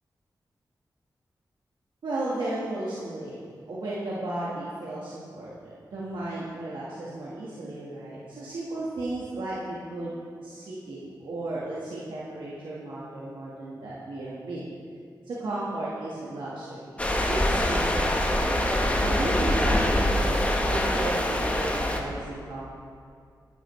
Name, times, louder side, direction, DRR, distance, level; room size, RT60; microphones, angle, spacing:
voice 1, 2.0-10.1 10.4-14.6 15.2-16.9 17.3-18.4 19.0-22.6, right 2 dB, 85° right, -7 dB, 1.3 m, -34 dB
sound 1, 17.0-22.0, left 1 dB, 15° left, 1.0 m, -24 dB
12.5 x 10.0 x 3.1 m, 2.3 s
wide cardioid pair, 75°, 8 cm